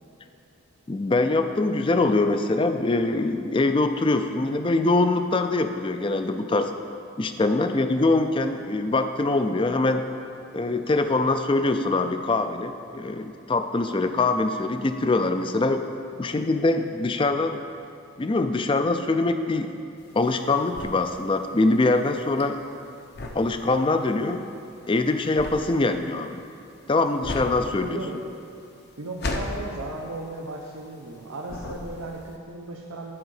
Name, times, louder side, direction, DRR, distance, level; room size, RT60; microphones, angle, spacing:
voice 1, 0.9-6.7 7.2-10.0 10.5-15.8 16.2-17.6 18.2-19.7 20.1-22.6 23.3-24.4 24.9-26.4 26.9-28.2, left 2 dB, 25° left, 8 dB, 0.3 m, -23 dB
sound 1, 20.0-31.2 31.5-32.3, left 2 dB, 50° left, 0.7 m, -36 dB
voice 2, 27.8-28.2 29.0-33.1, right 2 dB, 90° right, -2 dB, 0.9 m, -36 dB
10.5 x 4.9 x 6.4 m, 2.5 s
head